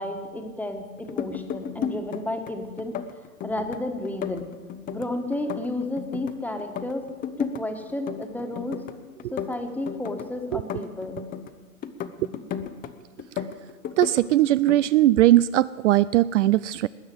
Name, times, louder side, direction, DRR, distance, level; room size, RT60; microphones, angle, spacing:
voice 1, 0.0-2.9 3.4-4.5 4.9-7.1 7.4-8.8 9.3-11.2, left 1 dB, 5° left, 5 dB, 1.5 m, -32 dB
sound 1, 1.0-2.5 2.8-3.8 4.1-6.3 6.6-7.6 7.9-8.9 9.2-11.5 11.8-12.9 13.2-14.2 14.5-14.9, left 8 dB, 20° left, 0.8 m, -34 dB
voice 2, 14.0-16.9, right 14 dB, 60° right, 17 dB, 0.5 m, -19 dB
20.0 x 8.7 x 7.8 m, 1.3 s
hypercardioid pair, 125°, 43 cm